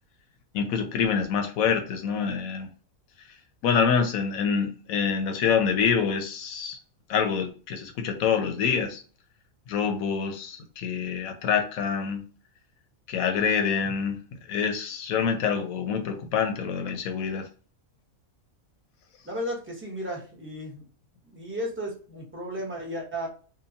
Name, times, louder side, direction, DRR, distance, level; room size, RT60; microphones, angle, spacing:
voice 1, 0.5-2.7 3.6-6.8 7.1-9.0 9.7-12.2 13.1-14.2 14.5-17.5, left 6 dB, 80° left, 5 dB, 1.1 m, -26 dB
voice 2, 19.2-20.8 21.3-23.3, equal, 10° right, -2 dB, 0.7 m, -34 dB
2.8 x 2.2 x 2.6 m, 0.37 s
omnidirectional pair, 1.5 m